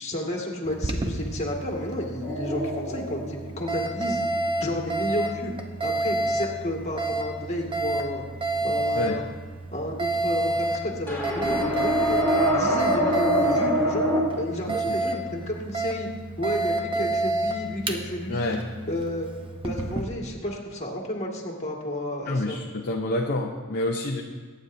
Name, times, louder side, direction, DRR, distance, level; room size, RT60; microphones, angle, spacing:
voice 1, 0.0-4.2 4.6-5.5 5.8-8.2 8.6-9.2 9.7-14.1 14.4-16.1 16.4-18.6 18.9-19.3 19.6-22.6, left 1 dB, 30° left, -1 dB, 2.0 m, -31 dB
Alarm, 0.7-20.0, right 2 dB, 25° right, 0.9 m, -30 dB
sound 1, 2.2-4.6 11.1-14.2, equal, 10° left, 2.3 m, -25 dB
voice 2, 18.3-18.6 22.3-24.2, left 1 dB, 45° left, 0 dB, 0.8 m, -27 dB
23.0 x 9.5 x 2.7 m, 1.5 s
head